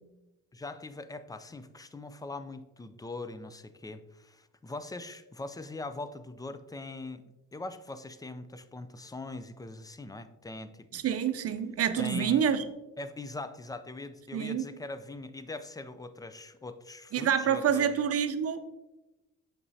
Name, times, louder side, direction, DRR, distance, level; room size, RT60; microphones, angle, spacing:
voice 1, 0.5-7.2 7.5-10.9 12.0-12.5 13.0-17.9, left 2 dB, 15° left, 11 dB, 0.4 m, -41 dB
voice 2, 10.9-12.6 14.3-14.6 17.1-18.6, right 8 dB, 50° right, 10 dB, 0.6 m, -27 dB
7.4 x 5.5 x 2.7 m, 1.0 s
cardioid pair, 90°, 30 cm